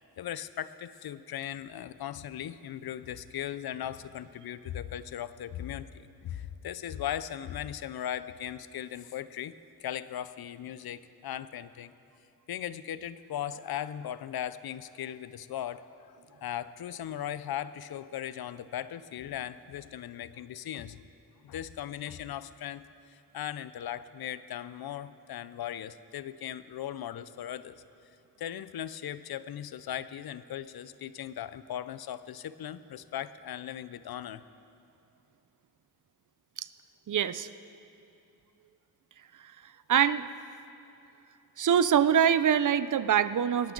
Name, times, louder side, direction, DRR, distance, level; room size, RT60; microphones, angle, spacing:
voice 1, 0.2-9.5 9.8-11.9 12.5-21.0 21.4-27.8 28.4-34.4, left 10 dB, 80° left, 15 dB, 0.6 m, -38 dB
voice 2, 37.1-37.5 39.4-40.3 41.6-43.7, right 8 dB, 55° right, 14 dB, 0.5 m, -25 dB
19.0 x 12.0 x 3.9 m, 2.8 s
cardioid pair, 70°, 37 cm